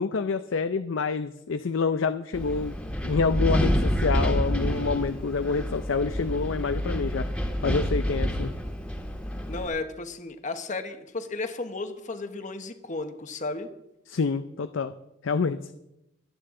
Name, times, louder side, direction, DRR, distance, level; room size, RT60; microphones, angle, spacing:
voice 1, 0.0-2.7 3.0-7.3 7.6-8.5 14.1-14.9 15.2-15.7, left 4 dB, 80° left, 11 dB, 0.5 m, -27 dB
Wind, 2.3-9.7, equal, 5° left, 1.6 m, -28 dB
voice 2, 9.5-13.7, left 3 dB, 40° left, 8 dB, 1.1 m, -34 dB
25.0 x 8.9 x 3.8 m, 0.89 s
head